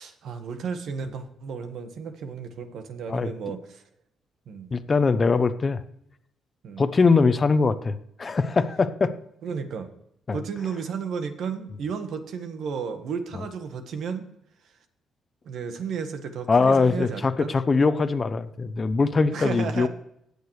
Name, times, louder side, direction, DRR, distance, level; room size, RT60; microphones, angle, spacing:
voice 1, 0.0-3.8 4.5-4.7 6.6-6.8 9.4-9.9 10.3-14.3 15.4-17.5 19.3-19.9, right 6 dB, 70° right, 8 dB, 1.4 m, -33 dB
voice 2, 4.7-5.8 6.8-9.1 10.3-10.4 16.5-19.9, left 4 dB, 35° left, 11 dB, 0.7 m, -22 dB
19.0 x 6.7 x 3.2 m, 0.74 s
cardioid pair, 90°, 0 cm